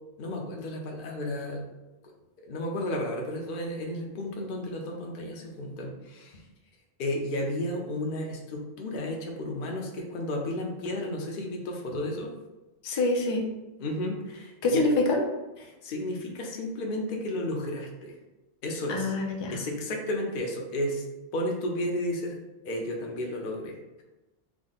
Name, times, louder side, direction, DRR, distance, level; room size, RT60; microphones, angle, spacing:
voice 1, 0.2-1.7 2.4-6.4 7.0-12.3 13.8-14.9 15.6-18.2 18.6-19.1 19.5-21.0 21.3-22.4 22.6-23.8, left 1 dB, 60° left, 0 dB, 0.8 m, -33 dB
voice 2, 12.8-13.5 14.6-15.2 18.9-19.6, left 2 dB, 40° left, 0 dB, 0.4 m, -25 dB
3.5 x 2.1 x 3.9 m, 1.1 s
omnidirectional pair, 1.1 m